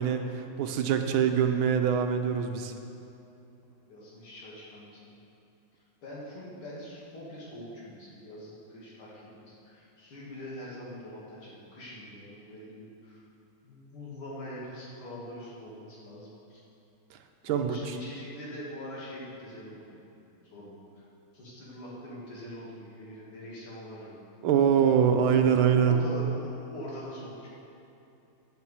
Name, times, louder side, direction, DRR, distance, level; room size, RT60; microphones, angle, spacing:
voice 1, 0.0-2.7 17.4-17.9 24.4-26.0, right 8 dB, 80° right, 6 dB, 1.5 m, -24 dB
voice 2, 3.9-5.2 6.0-13.2 13.6-16.6 17.5-20.0 20.4-21.0 21.3-24.2 25.1-27.5, equal, 85° left, -6 dB, 3.1 m, -43 dB
10.5 x 6.5 x 7.1 m, 2.8 s
omnidirectional pair, 2.3 m